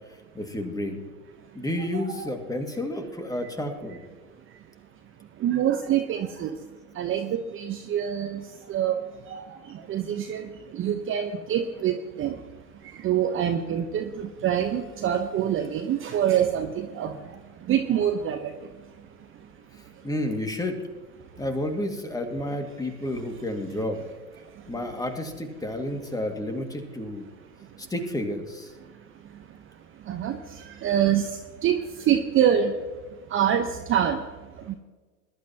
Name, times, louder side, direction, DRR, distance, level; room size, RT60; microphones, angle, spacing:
voice 1, 0.3-1.1 1.5-4.0 19.7-20.8 21.4-24.1 24.7-27.3 27.8-28.7, left 1 dB, 10° left, 4 dB, 2.1 m, -31 dB
voice 2, 5.4-6.5 7.0-8.4 8.7-9.0 9.3-9.4 9.9-10.4 10.7-12.3 13.0-17.1 17.7-18.4 30.1-30.4 30.8-31.2 31.6-31.8 32.1-32.7 33.3-34.2 34.7-34.8, right 9 dB, 25° right, 7 dB, 1.0 m, -25 dB
21.5 x 12.0 x 2.9 m, 1.3 s
hypercardioid pair, 95°, 45 cm